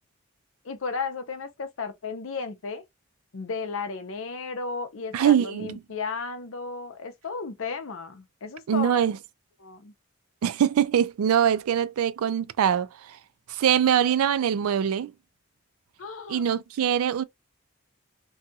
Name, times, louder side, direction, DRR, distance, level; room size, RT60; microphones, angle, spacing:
voice 1, 0.6-2.8 3.3-9.0 9.6-9.9 16.0-16.4, left 4 dB, 70° left, 0.6 m, -34 dB
voice 2, 5.1-5.8 8.7-9.2 10.4-13.2 13.5-15.1 16.3-17.2, right 9 dB, 85° right, 0.3 m, -23 dB
2.7 x 2.3 x 2.6 m
head